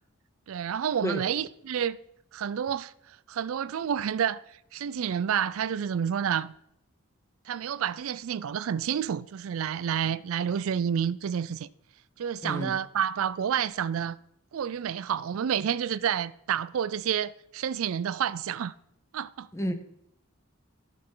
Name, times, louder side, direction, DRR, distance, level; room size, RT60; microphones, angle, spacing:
voice 1, 0.5-2.0 2.3-4.4 4.7-6.5 7.5-11.7 12.2-14.2 14.5-18.7 19.1-19.5, right 8 dB, 75° right, 0.4 m, -29 dB
voice 2, 12.4-12.8 19.5-19.7, equal, 15° left, 0.7 m, -30 dB
14.0 x 6.5 x 3.8 m
head